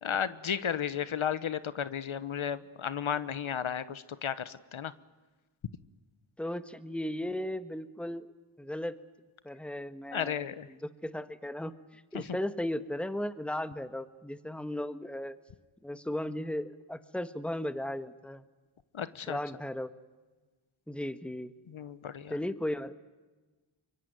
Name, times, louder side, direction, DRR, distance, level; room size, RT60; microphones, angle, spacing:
voice 1, 0.0-4.9 10.1-10.7 12.1-12.2 18.9-19.4 21.7-22.3, left 8 dB, 70° left, 14 dB, 1.1 m, -33 dB
voice 2, 6.4-8.3 8.6-9.0 9.4-15.4 15.8-18.4 19.3-19.9 20.9-21.5 22.3-22.9, left 1 dB, ahead, 11 dB, 1.4 m, -36 dB
24.5 x 23.0 x 9.5 m, 1.2 s
cardioid pair, 60°, 49 cm